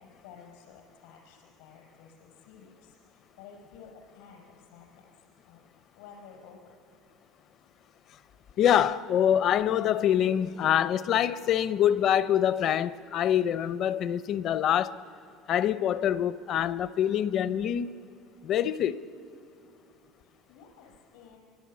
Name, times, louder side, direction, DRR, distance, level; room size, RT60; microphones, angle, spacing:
voice 1, 0.0-5.1 5.5-5.6 5.9-6.7 20.5-21.4, left 6 dB, 85° left, 5.0 m, -52 dB
voice 2, 8.6-15.0 15.5-18.0 18.4-19.0, left 10 dB, 40° left, 0.5 m, -25 dB
25.0 x 24.0 x 8.6 m
cardioid pair, 170°, 0 cm